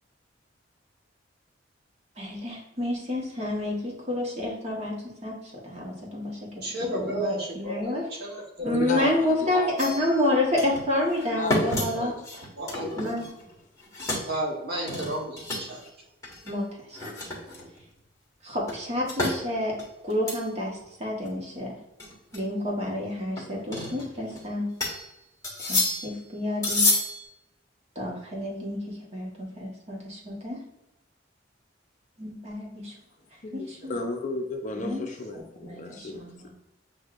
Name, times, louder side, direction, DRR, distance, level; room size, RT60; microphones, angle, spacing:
voice 1, 2.2-5.0 5.2-6.6 6.9-8.0 8.6-12.1 13.0-13.3 16.4-17.0 18.4-19.7 20.0-21.7 22.3-24.7 25.6-27.0 27.9-30.6 32.2-32.9 33.5-34.0 34.8-35.0 35.3-36.5, left 1 dB, 35° right, -2 dB, 1.3 m, -29 dB
voice 2, 6.6-9.2 12.6-13.3 14.3-15.8, equal, 60° right, -2 dB, 1.3 m, -33 dB
voice 3, 8.7-10.0 11.2-12.1 12.8-13.0 33.4-36.5, left 2 dB, 40° left, 3 dB, 0.5 m, -34 dB
sound 1, 9.8-10.3 10.6-10.9 11.2-13.5 13.8-14.3 14.9-15.9 16.2-16.5 16.9-17.8 18.7-19.4 19.8-20.5 20.8-20.9 21.2-21.3 22.0-22.4 23.4-24.4 24.8-25.1 25.4-26.2 26.6-27.2, left 2 dB, 15° left, 1.4 m, -29 dB
7.7 x 2.7 x 2.5 m, 0.92 s
head